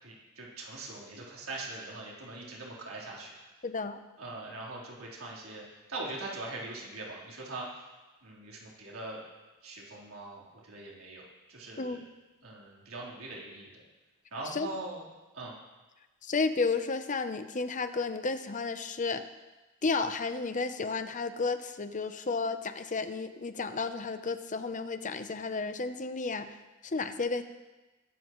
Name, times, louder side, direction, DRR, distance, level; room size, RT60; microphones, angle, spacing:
voice 1, 0.0-3.3 4.2-5.6 5.9-7.7 8.2-9.2 9.6-12.0 12.4-13.8 14.3-15.1 15.3-15.5, right 2 dB, 90° right, -4 dB, 3.8 m, -42 dB
voice 2, 3.6-4.0 11.8-12.1 14.5-14.7 16.2-19.2 19.8-26.5 26.8-27.4, left 4 dB, 35° left, 10 dB, 0.7 m, -32 dB
21.5 x 12.5 x 3.1 m, 1.2 s
head